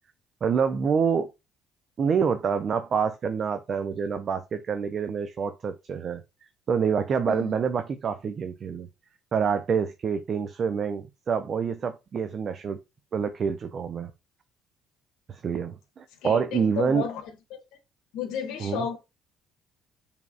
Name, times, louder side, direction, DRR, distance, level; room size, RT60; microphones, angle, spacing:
voice 1, 0.4-1.3 2.0-6.2 6.7-8.9 9.3-12.8 13.1-14.1 15.3-17.1 18.6-18.9, right 6 dB, 50° right, 0.5 m, -27 dB
voice 2, 16.2-17.3 18.1-19.0, left 7 dB, 70° left, 0.9 m, -32 dB
4.7 x 3.4 x 2.4 m
hypercardioid pair, 55°, 0 cm